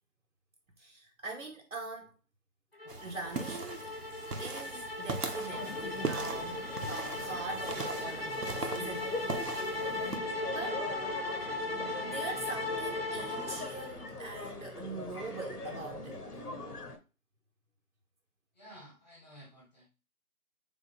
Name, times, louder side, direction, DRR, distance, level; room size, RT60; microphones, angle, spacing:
voice 1, 0.8-2.1 2.8-4.0 4.4-9.3 9.6-9.9 10.5-10.9 11.7-16.4, right 3 dB, 60° right, 0.8 m, -43 dB
sound 1, 2.8-14.1, left 2 dB, 45° left, 0.5 m, -38 dB
sound 2, 2.9-10.2, right 4 dB, 85° right, 1.0 m, -40 dB
sound 3, 5.5-17.0, left 2 dB, 90° left, 1.3 m, -42 dB
voice 2, 18.5-19.9, equal, 15° left, 1.2 m, -54 dB
3.7 x 3.7 x 3.7 m
figure-of-eight pair, 165°, 45 cm